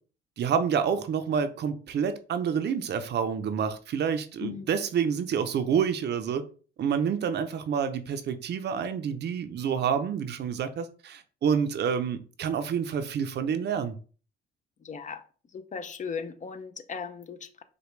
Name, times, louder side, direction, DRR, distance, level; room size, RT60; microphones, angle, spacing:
voice 1, 0.4-6.4 6.8-14.0, right 7 dB, 60° right, 0.6 m, -28 dB
voice 2, 14.8-15.2 15.5-17.6, left 6 dB, 40° left, 0.5 m, -37 dB
5.0 x 2.2 x 3.2 m
cardioid pair, 90°, 20 cm